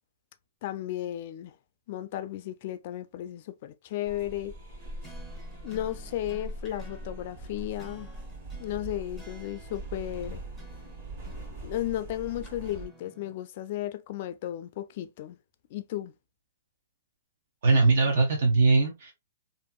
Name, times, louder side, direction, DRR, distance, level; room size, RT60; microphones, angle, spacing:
voice 1, 0.6-1.6 1.9-4.5 5.6-8.1 8.6-10.4 11.6-15.4 15.7-16.1, left 13 dB, 45° left, 0.3 m, -34 dB
sound 1, 4.1-12.9, right 1 dB, 40° right, 1.3 m, -41 dB
sound 2, 4.8-13.4, right 2 dB, 10° right, 0.6 m, -54 dB
voice 2, 17.6-19.1, right 3 dB, 65° right, 0.8 m, -21 dB
2.6 x 2.5 x 2.2 m
hypercardioid pair, 150°, 0 cm